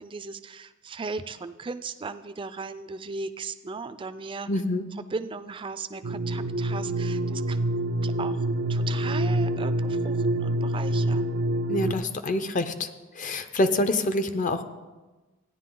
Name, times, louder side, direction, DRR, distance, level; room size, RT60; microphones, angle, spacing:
voice 1, 0.0-4.5 5.1-7.6 8.0-8.4 8.7-11.3, right 4 dB, 25° right, 11 dB, 0.4 m, -37 dB
voice 2, 4.5-4.9 11.7-12.9 13.1-14.6, left 2 dB, 40° left, 10 dB, 0.6 m, -26 dB
sound 1, 6.0-11.9, right 1 dB, 80° right, 0.5 m, -26 dB
14.0 x 9.8 x 3.8 m, 1.2 s
head